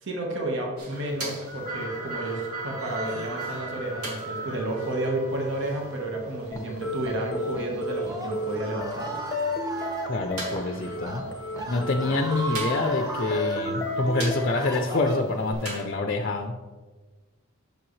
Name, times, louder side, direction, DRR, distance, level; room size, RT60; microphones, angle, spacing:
voice 1, 0.0-9.2, right 1 dB, 55° right, 0 dB, 1.3 m, -31 dB
sound 1, 0.8-15.8, right 1 dB, 90° right, 2.2 m, -39 dB
sound 2, 6.5-14.5, left 2 dB, 15° left, 0.9 m, -33 dB
Screaming, 7.7-10.1 10.9-11.2 11.5-13.6 14.2-15.5, right 2 dB, 15° right, 0.9 m, -36 dB
voice 2, 10.1-11.2 11.7-16.6, left 2 dB, 40° left, 4 dB, 0.5 m, -26 dB
8.9 x 6.5 x 3.2 m, 1.3 s
head